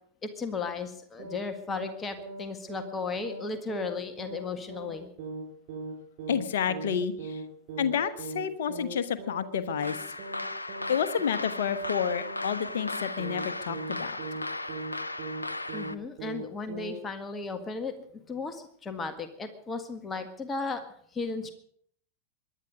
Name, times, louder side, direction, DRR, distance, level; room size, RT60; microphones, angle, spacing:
voice 1, 0.2-5.1 15.7-20.8 21.1-21.5, left 4 dB, 20° left, 8 dB, 1.7 m, -35 dB
sound 1, 1.2-1.4 1.7-1.9 2.2-2.4 2.7-2.9 3.2-3.4 3.7-4.4 4.7-4.9 5.2-5.4 5.7-5.9 6.2-6.4 6.7-6.9 7.2-7.4 7.7-7.9 8.2-8.4 8.7-8.9 9.2-9.4 9.7-9.9 10.2-10.4 10.7-10.9 11.2-11.4 11.7-11.9 12.2-12.4 12.7-12.9 13.2-13.4 13.7-13.9 14.2-14.4 14.7-14.9 15.2-15.4 15.7-15.9 16.2-16.4 16.7-16.9, right 3 dB, 45° right, 6.7 m, -39 dB
voice 2, 6.3-7.4 7.8-10.0 10.9-14.2, left 7 dB, 60° left, 10 dB, 1.2 m, -30 dB
sound 2, 9.8-15.9, left 2 dB, 80° left, 0.6 m, -36 dB
24.0 x 11.0 x 5.2 m, 0.62 s
figure-of-eight pair, 90°, 0 cm